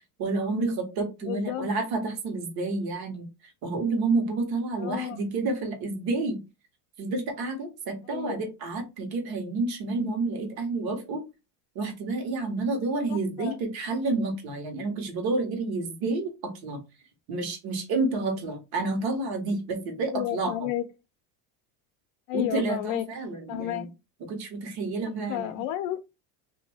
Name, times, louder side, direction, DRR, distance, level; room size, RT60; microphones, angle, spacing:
voice 1, 0.2-3.3 3.6-6.4 7.0-11.2 11.7-16.8 17.3-20.7 22.3-23.8 24.3-25.5, right 3 dB, 50° right, 1.3 m, -29 dB
voice 2, 1.2-1.7 4.8-5.2 8.0-8.4 13.1-13.6 20.1-20.9 22.3-23.1 23.5-23.9 25.3-26.0, left 13 dB, 70° left, 0.5 m, -31 dB
2.7 x 2.6 x 3.4 m
supercardioid pair, 115°, 46 cm